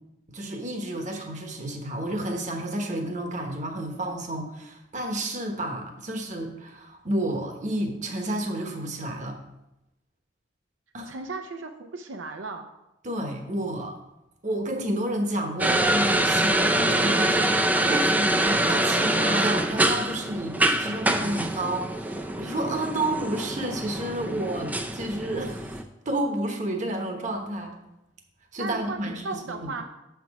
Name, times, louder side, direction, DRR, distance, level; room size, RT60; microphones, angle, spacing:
voice 1, 0.3-9.4 10.9-11.1 13.0-14.0 14.4-27.7 28.5-29.7, right 1 dB, 40° right, 3 dB, 1.1 m, -31 dB
voice 2, 11.0-12.7 28.6-29.8, right 3 dB, 80° right, 4 dB, 0.6 m, -36 dB
sound 1, 15.6-25.8, right 1 dB, 10° right, 0.4 m, -25 dB
7.1 x 5.9 x 4.8 m, 0.90 s
head